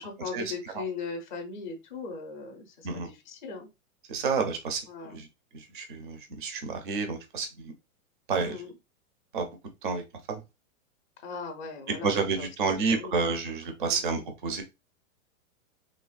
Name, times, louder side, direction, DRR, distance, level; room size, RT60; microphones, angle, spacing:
voice 1, 0.0-3.7 4.9-5.2 8.4-8.7 11.2-13.2 13.9-14.0, left 4 dB, 35° left, 5 dB, 0.5 m, -39 dB
voice 2, 4.1-4.8 5.1-5.3 5.5-7.7 8.3-8.6 9.3-9.5 9.8-10.0 10.3-10.4 12.0-14.6, right 4 dB, 40° right, 5 dB, 0.4 m, -29 dB
3.3 x 2.1 x 2.2 m, 0.24 s
supercardioid pair, 175°, 42 cm